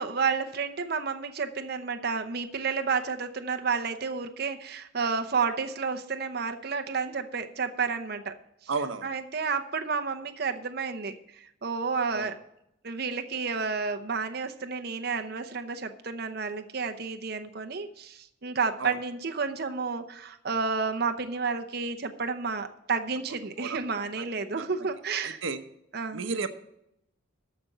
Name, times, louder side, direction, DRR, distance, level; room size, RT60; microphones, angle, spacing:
voice 1, 0.0-8.3 8.6-8.7 9.0-12.4 12.8-25.4 25.9-26.2, right 5 dB, 55° right, 7 dB, 0.8 m, -31 dB
voice 2, 8.7-9.1 12.1-12.3 18.8-18.9 23.6-23.8 24.2-24.3 24.6-24.7 25.2-25.6 26.1-26.5, right 4 dB, 85° right, 9 dB, 1.0 m, -32 dB
13.5 x 5.2 x 7.8 m, 0.80 s
head